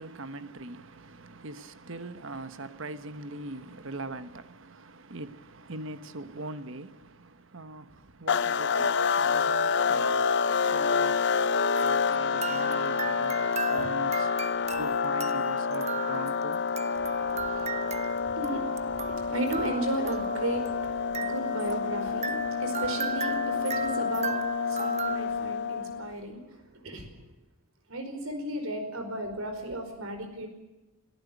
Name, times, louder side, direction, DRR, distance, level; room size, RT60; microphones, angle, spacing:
voice 1, 0.0-11.5 11.8-14.3 14.8-16.6, right 2 dB, 65° right, 1.2 m, -41 dB
sound 1, 8.3-26.1, left 5 dB, 55° left, 0.7 m, -28 dB
sound 2, 11.7-25.2, right 6 dB, 30° right, 0.9 m, -38 dB
voice 2, 14.5-14.8 17.0-27.3 27.9-30.5, right 1 dB, 80° right, 5.0 m, -35 dB
23.5 x 13.5 x 9.4 m
head